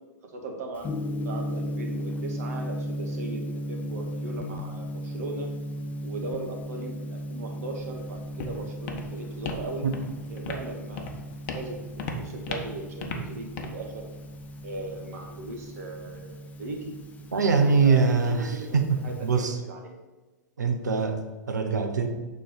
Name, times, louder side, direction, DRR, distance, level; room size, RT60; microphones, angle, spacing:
voice 1, 0.2-0.9 1.2-5.5 6.0-9.8 10.2-11.1 11.5-14.1 14.6-16.9 17.8-19.9, right 2 dB, 60° right, 2 dB, 1.4 m, -38 dB
Gong, 0.8-19.4, equal, 15° left, 0.5 m, -36 dB
Walk footsteps, 7.7-15.7, left 3 dB, 45° left, 0.9 m, -39 dB
voice 2, 17.3-19.6 20.6-22.1, right 5 dB, 75° right, 6 dB, 0.9 m, -23 dB
6.8 x 3.6 x 5.9 m, 1.2 s
figure-of-eight pair, 100°, 9 cm